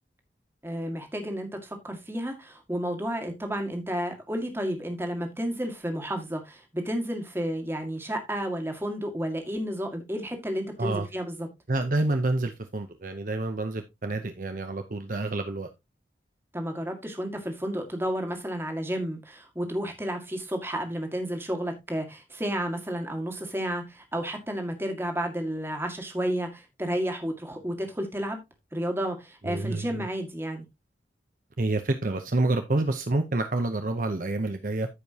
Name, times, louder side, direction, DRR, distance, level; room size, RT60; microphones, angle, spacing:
voice 1, 0.6-11.5 16.5-28.4 28.7-30.7, equal, 15° right, 1.8 m, -31 dB
voice 2, 11.7-15.7 29.4-30.1 31.6-34.9, right 2 dB, 45° right, 0.8 m, -28 dB
14.0 x 5.2 x 2.8 m
head